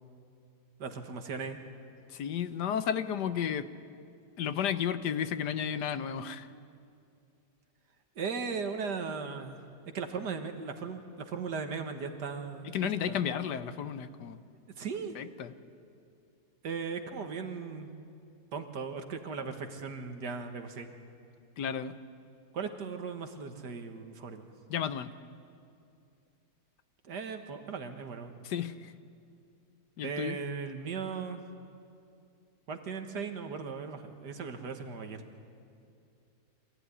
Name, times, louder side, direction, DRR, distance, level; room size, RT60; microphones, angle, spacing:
voice 1, 0.8-1.6 8.2-9.6 9.9-13.2 14.8-15.2 16.6-17.9 18.5-20.9 22.5-24.5 27.0-28.3 30.0-31.4 32.7-35.2, right 5 dB, 85° right, 6 dB, 2.1 m, -37 dB
voice 2, 2.1-3.7 4.4-6.5 12.6-14.4 15.1-15.5 21.6-21.9 24.7-25.1 28.4-28.9 30.0-30.4, left 8 dB, 85° left, 12 dB, 1.5 m, -33 dB
26.0 x 15.0 x 9.8 m, 2.5 s
omnidirectional pair, 1.8 m